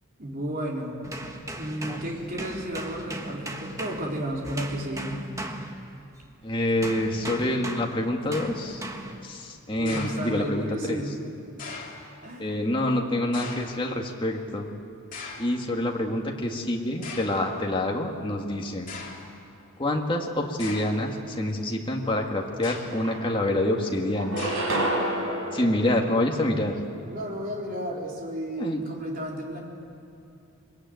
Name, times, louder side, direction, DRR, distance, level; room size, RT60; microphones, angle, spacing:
voice 1, 0.2-1.0 1.6-5.2 9.8-11.2 12.2-12.6 27.1-29.6, equal, 40° right, -1 dB, 3.8 m, -33 dB
sound 1, 1.0-6.3 6.8-9.3 10.0-10.3, right 1 dB, 15° right, 1.3 m, -38 dB
voice 2, 6.4-8.9 9.2-11.0 12.4-14.7 15.4-18.9 19.8-24.5 25.5-26.8 28.6-28.8, left 1 dB, 20° left, 1 dB, 1.8 m, -27 dB
sound 2, 8.3-8.7 9.8-10.7 11.6-12.1 13.3-13.9 15.1-15.6 16.5-16.6 17.0-17.5 18.3-18.4 18.9-19.4 20.6-21.1 22.5-23.1 24.4-25.0, left 4 dB, 40° left, 2.9 m, -40 dB
sound 3, 22.5-22.6 22.9-23.7 24.2-26.8, right 1 dB, 60° right, 4.7 m, -30 dB
23.0 x 21.5 x 9.3 m, 2.6 s
head